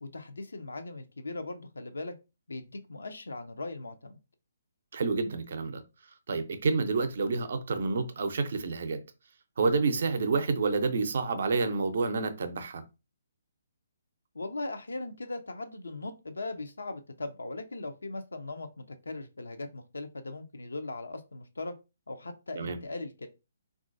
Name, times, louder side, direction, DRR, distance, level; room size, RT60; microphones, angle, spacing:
voice 1, 0.0-2.1 2.5-4.2 14.3-21.7 22.1-23.3, left 2 dB, 80° left, 0.4 m, -39 dB
voice 2, 4.9-5.8 6.3-9.0 9.6-12.8 22.5-22.8, right 4 dB, 60° right, 0.5 m, -29 dB
3.1 x 2.4 x 2.4 m
figure-of-eight pair, 140°, 0 cm